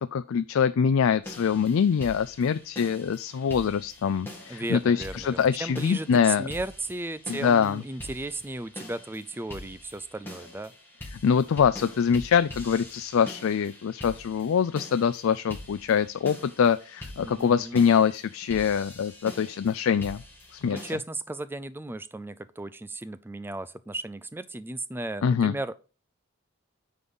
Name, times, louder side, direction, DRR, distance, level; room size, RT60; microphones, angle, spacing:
voice 1, 0.0-6.5 7.3-7.8 11.2-20.2 20.5-20.8 25.2-25.5, left 7 dB, 80° left, 0.4 m, -24 dB
sound 1, 1.2-20.9, left 1 dB, 10° left, 2.1 m, -44 dB
voice 2, 4.5-10.7 17.2-17.8 20.6-25.7, right 2 dB, 10° right, 0.4 m, -35 dB
9.5 x 3.9 x 5.4 m
head